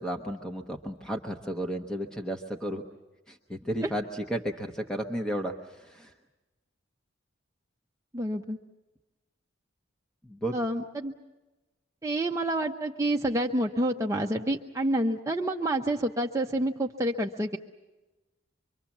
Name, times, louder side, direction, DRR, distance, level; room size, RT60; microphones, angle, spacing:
voice 1, 0.0-2.8 3.3-6.1 10.2-10.5, equal, 5° left, 3 dB, 1.0 m, -33 dB
voice 2, 8.1-8.6 10.5-11.1 12.0-17.6, right 1 dB, 15° right, 1 dB, 0.7 m, -28 dB
25.0 x 24.0 x 7.2 m, 1.1 s
head